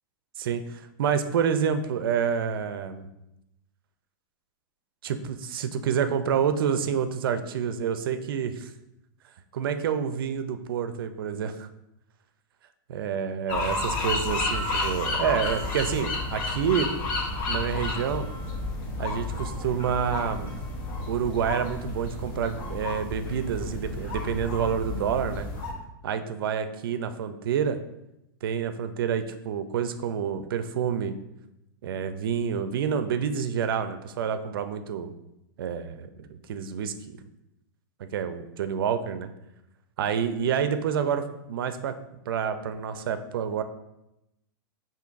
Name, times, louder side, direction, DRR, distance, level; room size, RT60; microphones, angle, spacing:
voice 1, 0.4-3.1 5.0-8.7 9.5-11.7 12.9-16.9 17.5-18.3 19.0-20.5 21.1-25.5 26.0-27.8 28.4-31.2 31.8-35.1 35.6-37.2 38.1-39.3 40.0-41.9 42.3-43.6, right 7 dB, 80° right, 10 dB, 0.4 m, -28 dB
sound 1, 13.5-25.7, left 2 dB, 45° left, 0.9 m, -31 dB
5.1 x 2.6 x 2.5 m, 0.86 s
hypercardioid pair, 135°, 12 cm